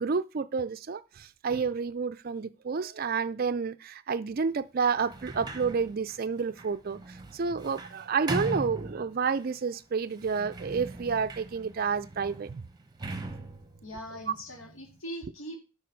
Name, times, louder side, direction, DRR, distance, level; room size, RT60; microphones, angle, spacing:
voice 1, 0.0-12.6, right 5 dB, 45° right, 0.4 m, -30 dB
Sliding door, 5.0-9.5 10.1-15.0, right 2 dB, 20° right, 0.9 m, -40 dB
voice 2, 13.8-15.6, equal, 70° left, 2.3 m, -41 dB
7.6 x 5.0 x 6.6 m
head